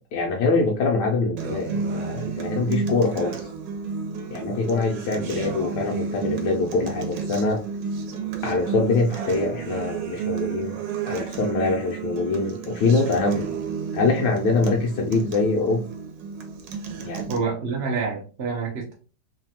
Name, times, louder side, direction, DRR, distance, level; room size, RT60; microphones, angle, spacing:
voice 1, 0.1-3.3 4.3-7.6 8.4-10.7 11.1-13.5 13.9-15.8 17.0-17.3, left 3 dB, 75° left, 0 dB, 1.1 m, -24 dB
Acoustic guitar, 1.4-17.4, right 6 dB, 85° right, 1.3 m, -31 dB
voice 2, 17.3-18.9, right 4 dB, 60° right, -2 dB, 0.7 m, -27 dB
3.2 x 2.2 x 2.7 m, 0.36 s
omnidirectional pair, 1.9 m